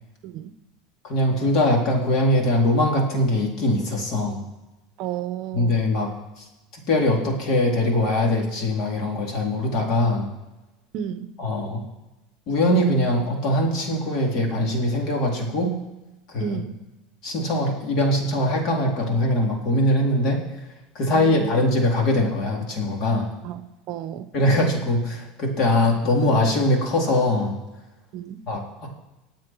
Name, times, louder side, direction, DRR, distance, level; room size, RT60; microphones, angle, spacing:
voice 1, 1.0-4.4 5.5-6.1 6.4-6.5 6.9-10.3 11.4-11.8 12.5-15.7 16.3-16.6 17.2-20.6 21.0-23.3 24.3-27.6 28.5-28.9, left 1 dB, 45° left, 1 dB, 3.6 m, -22 dB
voice 2, 5.0-5.7 10.9-11.3 16.4-16.8 21.1-21.6 23.4-23.6 23.9-24.3 28.1-28.4, right 10 dB, 50° right, 11 dB, 0.8 m, -32 dB
25.5 x 8.6 x 4.7 m, 1.0 s
supercardioid pair, 155°, 0 cm